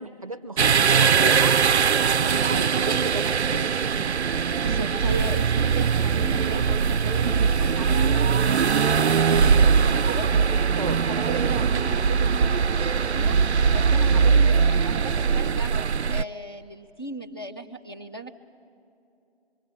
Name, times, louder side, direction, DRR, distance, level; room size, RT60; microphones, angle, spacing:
voice 1, 0.0-1.6 2.2-3.8 10.8-11.0, right 2 dB, 35° right, 14 dB, 0.6 m, -33 dB
sound 1, 0.6-16.2, right 6 dB, 85° right, 0.5 m, -21 dB
voice 2, 4.5-10.3 11.1-15.7 16.1-18.4, right 2 dB, 20° left, 0 dB, 0.6 m, -37 dB
25.5 x 23.0 x 8.7 m, 2.7 s
figure-of-eight pair, 160°, 33 cm